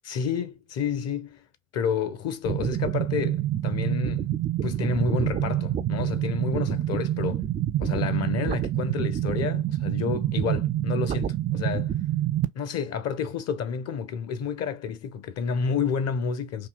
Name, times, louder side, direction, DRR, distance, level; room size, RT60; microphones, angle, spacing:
voice 1, 0.0-1.4 1.7-4.3 4.6-7.4 7.8-12.0 12.5-16.7, left 6 dB, 40° left, 0.7 m, -30 dB
sound 1, 2.5-12.5, right 12 dB, 25° right, 0.3 m, -27 dB
3.7 x 2.8 x 2.4 m
figure-of-eight pair, 55°, 39 cm